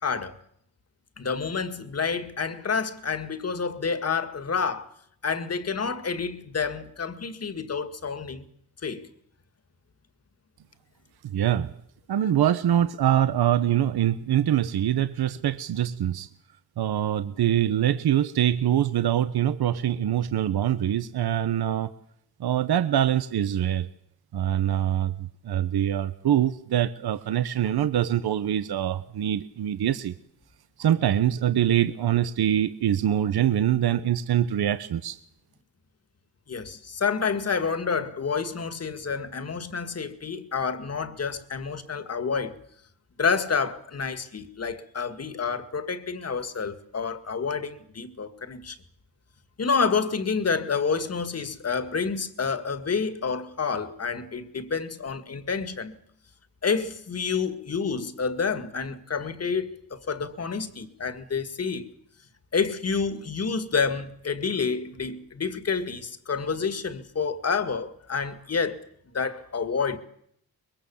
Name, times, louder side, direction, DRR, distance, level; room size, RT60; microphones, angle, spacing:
voice 1, 0.0-0.4 1.2-4.9 5.2-8.5 8.8-9.1 12.2-12.3 36.5-42.6 43.2-48.8 49.6-56.0 56.6-61.9 62.5-68.8 69.1-70.0, left 5 dB, 40° left, 2.1 m, -29 dB
voice 2, 11.2-11.7 12.1-16.3 16.8-21.9 22.4-23.9 24.3-30.1 30.8-35.2, right 11 dB, 75° right, 1.1 m, -24 dB
23.5 x 22.5 x 7.2 m
wide cardioid pair, 125°, 38 cm